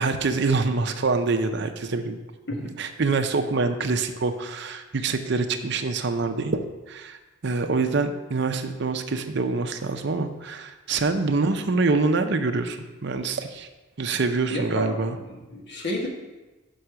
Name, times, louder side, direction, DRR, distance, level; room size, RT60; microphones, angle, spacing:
voice 1, 0.0-2.2 2.8-13.7 14.0-15.2, right 3 dB, 55° right, 7 dB, 0.6 m, -25 dB
voice 2, 14.5-16.1, equal, 55° left, -1 dB, 1.4 m, -31 dB
6.4 x 5.4 x 5.8 m, 1.1 s
head